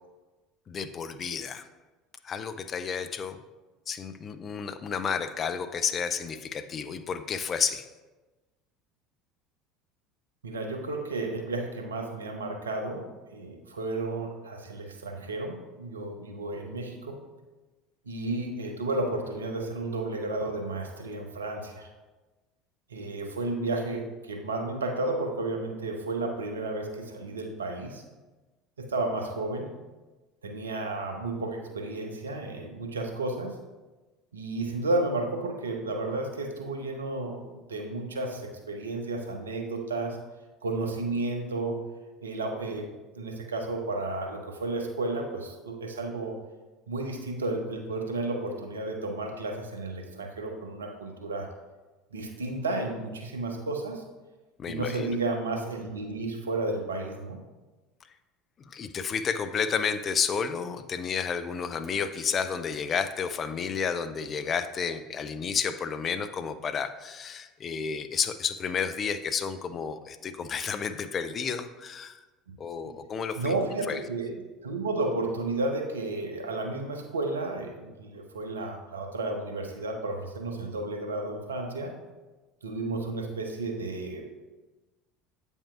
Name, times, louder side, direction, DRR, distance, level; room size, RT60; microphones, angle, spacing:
voice 1, 0.7-1.7 2.2-3.4 3.9-7.9 54.6-55.2 58.6-72.2 72.6-73.5 73.9-74.0, left 6 dB, 35° left, 11 dB, 0.4 m, -31 dB
voice 2, 10.4-17.2 18.1-21.9 22.9-28.0 28.8-29.7 30.4-33.6 34.3-40.2 40.6-41.8 42.2-42.9 43.1-46.3 46.9-51.5 52.1-54.0 54.7-57.4 73.4-74.3 74.6-81.9 82.6-84.3, right 2 dB, 85° right, 4 dB, 0.7 m, -32 dB
8.4 x 5.4 x 2.4 m, 1.2 s
figure-of-eight pair, 70°, 0 cm